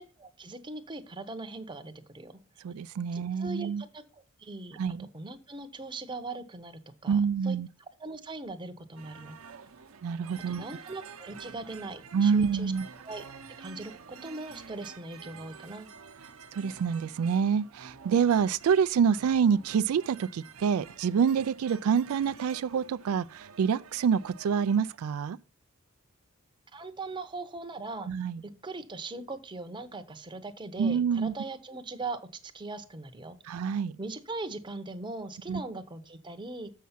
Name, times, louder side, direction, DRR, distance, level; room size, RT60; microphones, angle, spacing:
voice 1, 0.0-2.4 3.1-4.8 5.1-7.6 8.0-9.4 10.5-12.7 13.0-13.2 13.6-15.9 26.7-28.1 28.4-33.4 34.0-36.7, right 3 dB, 20° right, 0.7 m, -40 dB
voice 2, 2.6-3.8 4.8-5.1 7.1-7.7 10.0-10.7 12.1-12.9 16.5-25.4 28.1-28.4 30.8-31.3 33.5-33.9 35.5-35.6, right 6 dB, 90° right, 0.3 m, -27 dB
sound 1, 9.0-25.0, right 5 dB, 70° right, 0.8 m, -49 dB
7.3 x 5.7 x 5.7 m
head